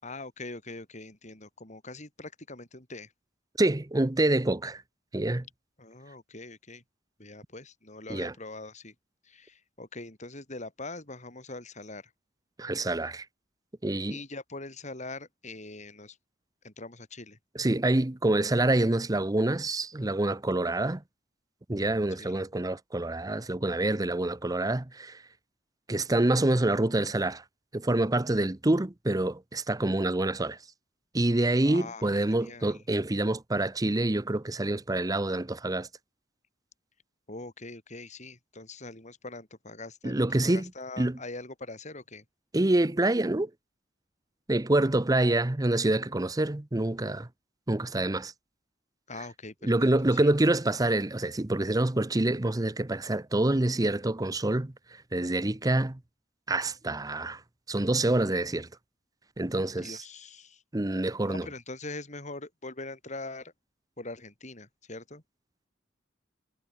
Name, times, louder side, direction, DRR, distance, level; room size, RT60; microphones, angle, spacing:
voice 1, 0.0-3.1 5.8-6.8 7.2-8.9 9.2-12.0 14.1-16.2 16.6-17.4 22.2-22.4 31.6-32.8 37.3-42.2 49.1-49.7 50.2-50.3 59.8-60.6 61.2-63.5 64.0-65.2, left 2 dB, 40° left, 5.9 m, -42 dB
voice 2, 3.6-4.8 5.1-5.4 8.1-8.3 12.6-13.2 13.8-14.2 17.5-21.0 21.7-25.2 25.9-27.4 27.7-30.6 31.1-35.9 40.0-40.7 41.0-41.2 42.5-43.5 44.5-47.3 47.7-48.3 49.6-54.7 55.1-56.0 56.5-57.4 57.7-58.7 59.4-60.0 60.7-61.5, right 2 dB, 20° right, 0.8 m, -26 dB
head